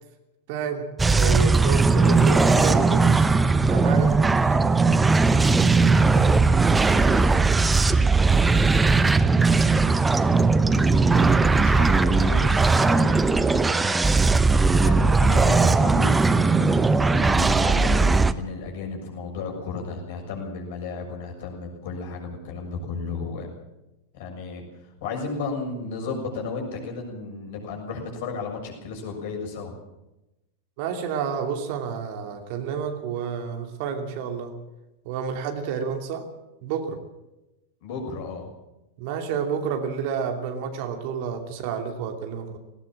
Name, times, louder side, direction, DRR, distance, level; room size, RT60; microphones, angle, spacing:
voice 1, 0.5-3.3 3.7-4.6 30.8-34.6 35.0-36.3 36.6-37.0 39.0-42.6, right 7 dB, 45° right, 5 dB, 2.7 m, -30 dB
sound 1, 1.0-18.3, right 3 dB, 10° right, 0.9 m, -19 dB
voice 2, 5.8-6.2 6.5-6.6 6.9-7.3 10.4-13.6 14.8-23.5 24.1-24.6 25.0-29.7 37.8-38.5, left 4 dB, 50° left, 1 dB, 6.7 m, -34 dB
19.0 x 18.5 x 7.5 m, 0.97 s
figure-of-eight pair, 90°, 0 cm